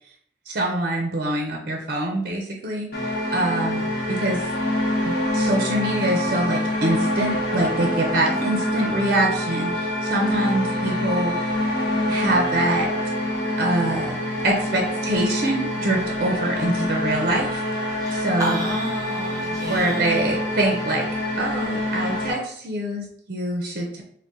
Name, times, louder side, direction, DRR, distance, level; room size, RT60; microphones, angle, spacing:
voice 1, 0.5-2.9 3.3-3.8 4.1-4.4 5.0-11.3 12.1-12.9 13.6-14.2 14.4-17.6 18.1-18.6 19.7-21.1 21.4-24.0, right 1 dB, 50° right, 1 dB, 0.5 m, -24 dB
sound 1, 2.9-22.3, left 1 dB, 55° left, 1.2 m, -25 dB
voice 2, 16.6-17.1 18.0-20.3, right 1 dB, 20° right, -2 dB, 0.9 m, -32 dB
4.0 x 2.1 x 3.5 m, 0.65 s
head